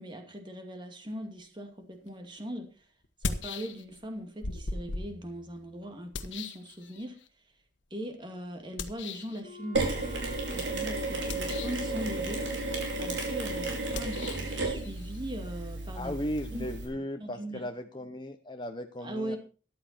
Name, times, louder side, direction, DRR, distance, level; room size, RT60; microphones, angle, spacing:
voice 1, 0.0-2.7 3.2-7.2 7.9-9.9 10.5-12.5 13.0-16.1 16.5-17.7 19.0-19.4, equal, 25° right, 5 dB, 2.3 m, -40 dB
sound 1, 2.1-2.2 3.0-4.1 4.4-7.3 8.8-9.4 11.2-11.9 13.9-16.5, left 3 dB, 85° left, 1.4 m, -39 dB
Wind instrument woodwind instrument, 9.4-14.1, left 2 dB, 50° left, 2.7 m, -49 dB
Mechanisms, 9.7-16.9, right 2 dB, 90° right, 5.0 m, -33 dB
voice 2, 15.9-19.4, equal, 25° left, 5 dB, 0.9 m, -36 dB
14.0 x 11.5 x 4.4 m, 0.35 s
head